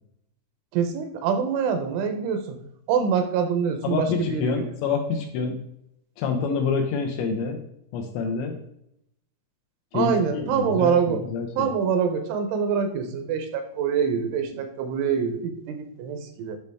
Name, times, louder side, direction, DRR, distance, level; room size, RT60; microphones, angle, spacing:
voice 1, 0.7-2.6 2.9-4.7 9.9-11.2 11.6-16.6, right 6 dB, 80° right, 7 dB, 3.2 m, -25 dB
voice 2, 3.8-5.6 6.2-7.6 7.9-8.6 9.9-11.7 14.5-14.6, left 5 dB, 80° left, 3 dB, 2.7 m, -27 dB
9.2 x 5.4 x 3.5 m, 0.76 s
omnidirectional pair, 5.7 m